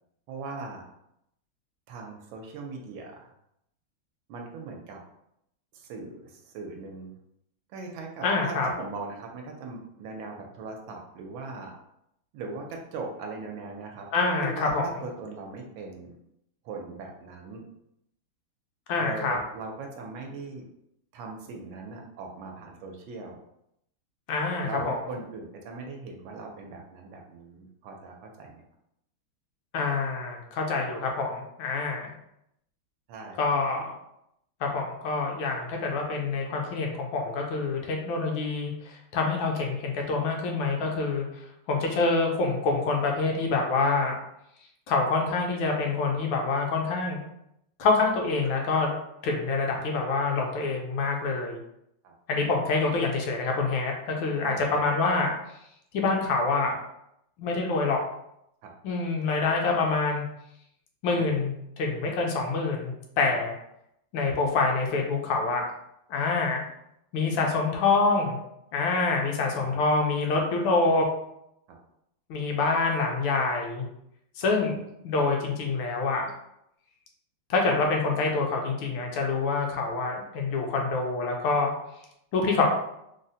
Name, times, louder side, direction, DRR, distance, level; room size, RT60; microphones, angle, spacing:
voice 1, 0.3-0.9 1.9-3.3 4.3-5.0 5.7-7.1 7.7-11.7 12.3-14.1 14.4-16.2 16.6-17.6 19.0-20.6 21.1-23.4 24.6-28.6 33.1-33.6 52.0-52.1 54.4-54.6 58.6-58.7 61.2-61.3 63.3-63.4 69.6-69.8 74.4-74.5, right 3 dB, 80° right, 2 dB, 1.3 m, -39 dB
voice 2, 8.2-8.7 14.1-14.9 18.9-19.4 24.3-25.0 29.7-32.1 33.4-33.9 34.6-41.2 41.7-44.1 44.9-47.2 47.8-48.9 49.2-51.6 52.3-55.3 55.9-56.8 57.4-58.0 58.8-60.3 61.0-63.5 64.1-65.6 66.1-66.6 67.1-68.4 68.7-71.1 72.3-73.9 74.4-76.3 77.5-81.7 82.3-82.7, left 3 dB, 80° left, 1 dB, 1.3 m, -26 dB
3.8 x 2.0 x 2.6 m, 0.79 s
omnidirectional pair, 2.2 m